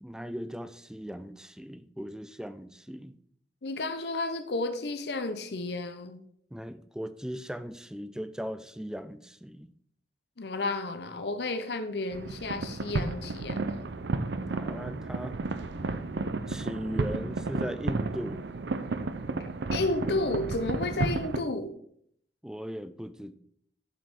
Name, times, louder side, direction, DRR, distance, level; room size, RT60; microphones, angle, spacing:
voice 1, 0.0-3.2 6.5-9.7 14.5-15.4 16.5-18.4 22.4-23.4, equal, 5° right, 0.4 m, -38 dB
voice 2, 3.6-6.2 10.4-13.7 19.4-21.8, left 2 dB, 65° left, 0.8 m, -32 dB
sound 1, 12.1-21.4, right 3 dB, 75° right, 0.6 m, -32 dB
7.5 x 5.4 x 6.0 m
head